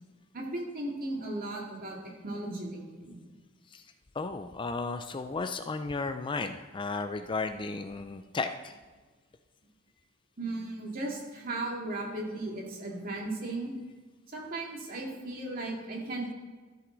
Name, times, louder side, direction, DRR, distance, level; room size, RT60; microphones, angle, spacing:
voice 1, 0.3-2.0 2.2-3.2 10.4-13.7 14.3-16.3, right 2 dB, 45° right, -1 dB, 2.3 m, -36 dB
voice 2, 4.1-8.8, left 3 dB, 25° left, 9 dB, 0.4 m, -34 dB
13.0 x 7.8 x 3.9 m, 1.3 s
head